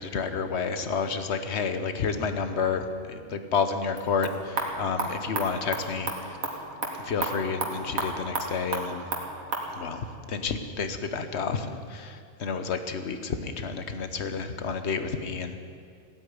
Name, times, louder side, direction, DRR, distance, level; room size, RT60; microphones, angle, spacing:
voice 1, 0.0-6.4 7.0-9.0 9.7-15.6, left 5 dB, 55° left, 9 dB, 1.2 m, -30 dB
sound 1, 3.9-9.7, right 2 dB, 80° right, 2.4 m, -33 dB
16.5 x 8.9 x 9.6 m, 2.4 s
omnidirectional pair, 1.4 m